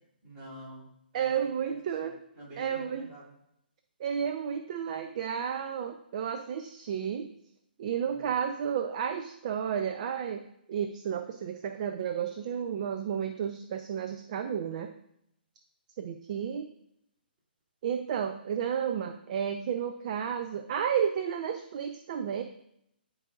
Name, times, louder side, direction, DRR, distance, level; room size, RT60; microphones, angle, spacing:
voice 1, 0.2-0.9 1.2-2.1 2.3-3.4 8.0-8.4, equal, 25° right, -4 dB, 2.8 m, -49 dB
voice 2, 1.1-2.2 2.6-3.0 4.0-7.3 7.8-10.4 10.7-14.9 16.0-16.7 17.8-22.4, right 8 dB, 45° right, 7 dB, 0.5 m, -32 dB
10.5 x 4.8 x 2.4 m, 0.77 s
hypercardioid pair, 140°, 6 cm